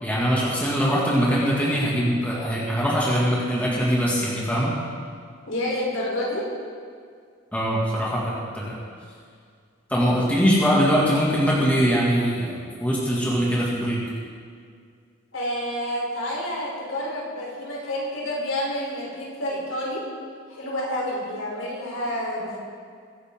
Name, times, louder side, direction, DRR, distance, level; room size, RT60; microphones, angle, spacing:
voice 1, 0.0-4.7 7.5-8.8 9.9-14.0, equal, 5° left, -6 dB, 2.2 m, -22 dB
voice 2, 5.5-6.4 15.3-20.0 20.5-22.6, left 1 dB, 70° left, -4 dB, 3.9 m, -29 dB
22.5 x 10.0 x 3.8 m, 2.2 s
head